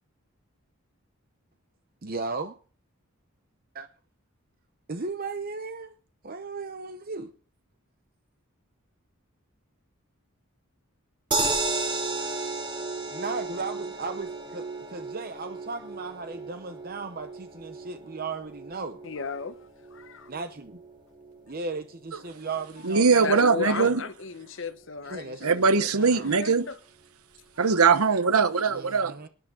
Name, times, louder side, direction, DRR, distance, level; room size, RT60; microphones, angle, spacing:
voice 1, 2.0-2.6 3.7-3.9 4.9-5.9 6.2-7.3 13.1-19.0 20.3-20.8 21.5-23.3 23.7-23.9 25.1-26.3 28.7-29.3, right 3 dB, 45° right, 0.8 m, -36 dB
sound 1, 11.3-23.5 23.9-24.0 24.3-24.4, right 3 dB, 20° right, 3.0 m, -34 dB
voice 2, 19.0-20.3 22.3-22.4 23.1-26.7 28.7-28.8, left 5 dB, 60° left, 0.9 m, -35 dB
voice 3, 22.8-24.0 25.4-26.6 27.6-29.2, right 5 dB, 90° right, 1.0 m, -21 dB
19.5 x 11.0 x 3.8 m
head